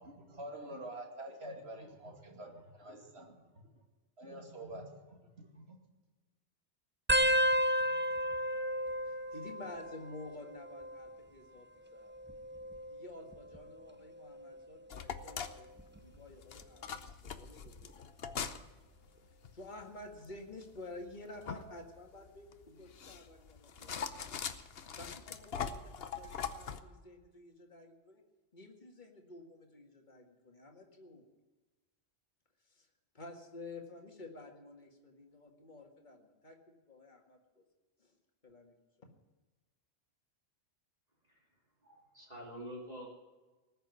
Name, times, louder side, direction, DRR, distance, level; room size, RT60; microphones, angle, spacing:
voice 1, 0.0-3.3 3.7-3.8 4.2-5.8, right 1 dB, 60° right, 2 dB, 2.9 m, -47 dB
sound 1, 7.1-10.3 10.6-11.2 12.1-13.6 14.2-14.6 15.8-16.2 17.7-17.8, equal, 15° right, 0.5 m, -33 dB
voice 2, 9.0-11.7 11.9-12.1 12.9-15.7 16.0-18.1 19.5-24.4 25.0-28.2 28.5-31.3 32.7-32.9 33.1-37.6 38.0-38.1 38.4-38.7, left 2 dB, 40° left, 2 dB, 2.1 m, -51 dB
sound 2, 14.9-26.8, left 7 dB, 60° left, 1.1 m, -42 dB
voice 3, 41.8-43.1, equal, 35° right, -2 dB, 2.7 m, -47 dB
19.5 x 6.9 x 9.6 m, 1.2 s
omnidirectional pair, 1.2 m